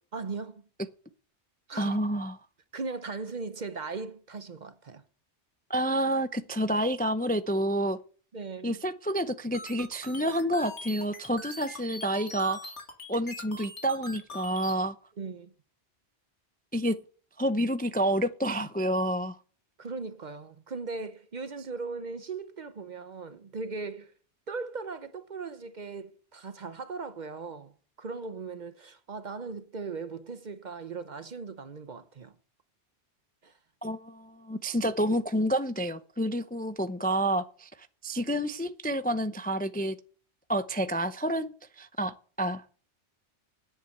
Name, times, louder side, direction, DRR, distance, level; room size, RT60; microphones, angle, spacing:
voice 1, 0.1-0.6 1.7-2.0 2.7-5.0 8.3-8.8 15.2-15.5 19.8-24.1 24.5-27.7 28.0-32.3 33.4-33.5, right 4 dB, 45° right, 0.8 m, -38 dB
voice 2, 1.8-2.4 5.7-8.0 8.6-12.7 13.1-14.9 16.7-17.0 17.4-19.4 33.8-37.7 38.0-40.0 40.5-42.6, right 1 dB, 10° left, 0.4 m, -29 dB
sound 1, 9.5-14.8, left 2 dB, 80° left, 2.6 m, -42 dB
10.0 x 8.1 x 7.9 m
omnidirectional pair, 1.2 m